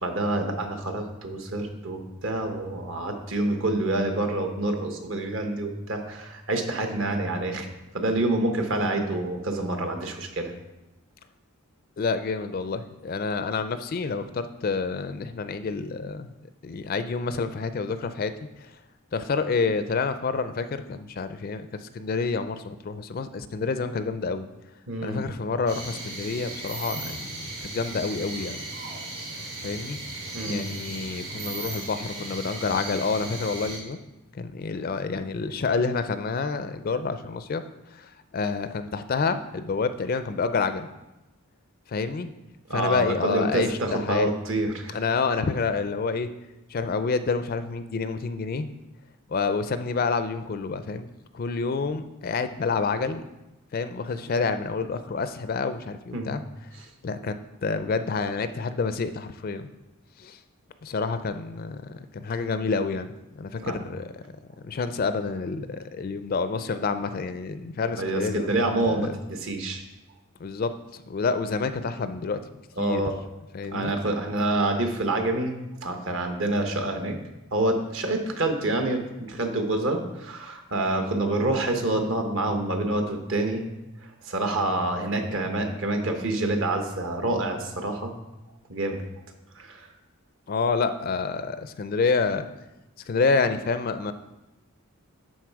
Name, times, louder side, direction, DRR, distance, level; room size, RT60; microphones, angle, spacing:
voice 1, 0.0-7.7 7.9-10.5 24.9-25.2 30.3-30.6 42.7-45.0 56.1-56.3 63.6-63.8 68.0-69.8 72.8-73.1 73.7-75.5 75.8-77.1 77.5-83.6 84.2-88.1 88.7-89.0 89.5-89.9, right 2 dB, 60° right, 4 dB, 1.1 m, -27 dB
voice 2, 12.0-16.3 16.6-18.3 19.1-24.5 25.0-28.6 29.6-30.0 30.5-34.0 34.3-37.6 37.9-40.9 41.9-42.3 42.7-44.3 44.9-46.3 46.7-48.7 49.3-51.1 51.3-53.2 53.7-56.4 57.0-57.3 57.6-59.7 60.2-60.4 60.8-64.2 64.6-68.5 68.8-69.1 70.4-70.7 71.1-72.4 72.8-73.0 73.5-73.9 90.5-92.5 93.1-94.1, left 4 dB, 40° left, 11 dB, 0.4 m, -28 dB
sound 1, 25.7-33.8, right 2 dB, 75° right, 2.9 m, -36 dB
11.0 x 4.1 x 4.6 m, 0.99 s
head